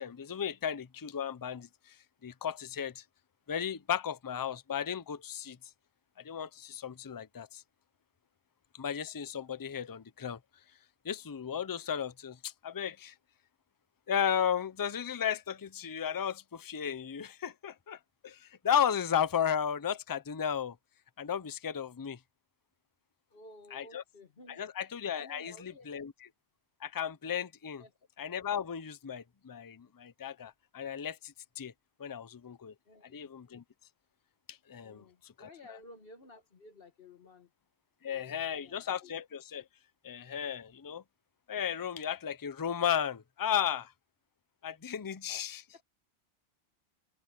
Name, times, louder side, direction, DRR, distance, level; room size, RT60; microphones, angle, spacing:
voice 1, 0.0-2.0 2.2-3.0 3.5-5.6 6.2-7.6 8.7-10.4 11.0-13.1 14.1-20.8 21.2-22.2 23.7-24.0 24.5-26.1 26.8-27.8 28.2-31.7 32.0-32.7 33.1-33.6 34.5-35.8 38.0-39.6 40.0-41.0 41.5-43.9 44.6-45.6, left 8 dB, 25° left, 0.5 m, -34 dB
voice 2, 23.3-24.6 25.1-26.0 27.8-27.9 29.8-29.9 32.8-33.2 34.8-37.5 38.1-39.1 45.7-45.8, left 2 dB, 60° left, 1.6 m, -54 dB
omnidirectional pair, 1.1 m